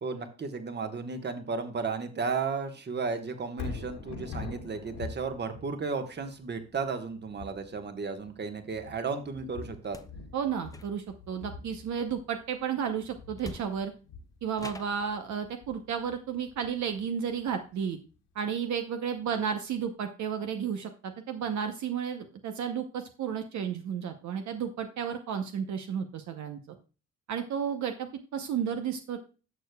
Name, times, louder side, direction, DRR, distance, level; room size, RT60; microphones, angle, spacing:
voice 1, 0.0-10.0, right 4 dB, 35° right, 7 dB, 1.3 m, -34 dB
Thunder, 3.5-17.7 18.1-18.2, left 4 dB, 85° left, 2.2 m, -45 dB
sound 1, 9.8-10.2 10.6-11.3 12.8-12.9 13.4-14.0 14.5-15.1, left 3 dB, 10° left, 0.6 m, -45 dB
voice 2, 10.3-13.9 14.4-18.0 18.3-26.6 27.3-29.2, right 7 dB, 70° right, 6 dB, 0.8 m, -32 dB
11.5 x 6.6 x 2.2 m, 0.35 s
cardioid pair, 90°, 30 cm